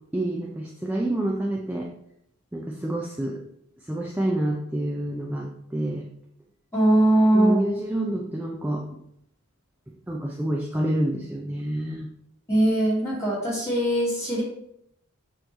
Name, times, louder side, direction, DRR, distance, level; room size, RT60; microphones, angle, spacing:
voice 1, 0.1-1.9 2.5-3.4 3.8-6.1 7.3-8.9 10.1-12.1, right 1 dB, 10° right, -1 dB, 0.5 m, -28 dB
voice 2, 6.7-7.6 12.5-14.4, right 1 dB, 15° left, -7 dB, 2.7 m, -21 dB
6.7 x 3.1 x 5.4 m, 0.74 s
head